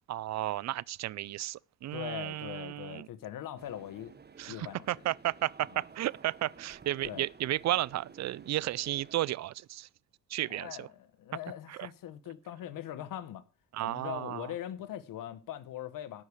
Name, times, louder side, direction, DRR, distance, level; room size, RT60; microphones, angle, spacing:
voice 1, 0.1-3.1 4.4-9.9 10.3-10.9 11.7-11.9 13.7-14.5, right 14 dB, 55° right, 0.5 m, -33 dB
voice 2, 1.9-4.1 4.5-5.0 5.7-5.8 7.0-7.3 10.4-13.4 13.8-16.2, left 11 dB, 75° left, 1.0 m, -41 dB
sound 1, 3.6-9.1, right 5 dB, 30° right, 1.2 m, -53 dB
12.0 x 4.8 x 8.3 m
cardioid pair, 90°, 33 cm